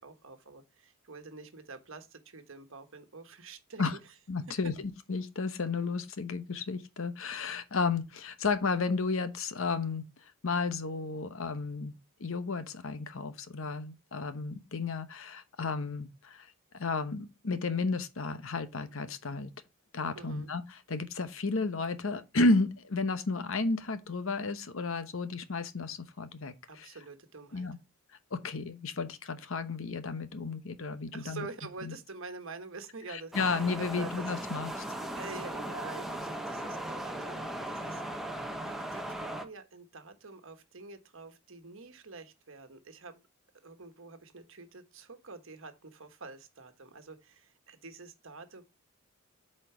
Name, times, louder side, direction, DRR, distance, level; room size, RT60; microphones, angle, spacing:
voice 1, 0.0-3.8 20.1-20.5 26.7-27.7 31.1-34.3 35.2-38.4 38.6-43.2 43.6-48.6, right 3 dB, 60° right, 1.3 m, -47 dB
voice 2, 4.3-4.7 5.1-10.0 10.4-11.9 12.2-16.5 16.7-19.5 19.9-26.9 27.5-27.8 28.3-31.4 31.8-31.9 33.1-34.8, left 3 dB, 65° left, 0.9 m, -32 dB
sound 1, 33.3-39.4, right 1 dB, ahead, 0.9 m, -38 dB
8.4 x 4.5 x 4.4 m
head